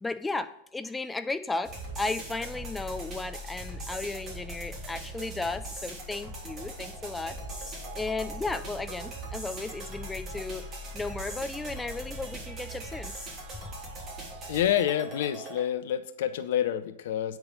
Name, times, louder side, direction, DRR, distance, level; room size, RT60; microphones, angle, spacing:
voice 1, 0.0-7.4 7.6-10.6 10.9-13.1 13.5-13.6, left 3 dB, 10° left, 10 dB, 0.7 m, -35 dB
sound 1, 1.6-15.6, right 1 dB, 30° right, 3.3 m, -40 dB
voice 2, 14.5-17.4, left 10 dB, 55° left, 13 dB, 0.7 m, -28 dB
8.8 x 8.1 x 5.3 m, 0.69 s
figure-of-eight pair, 90°, 0 cm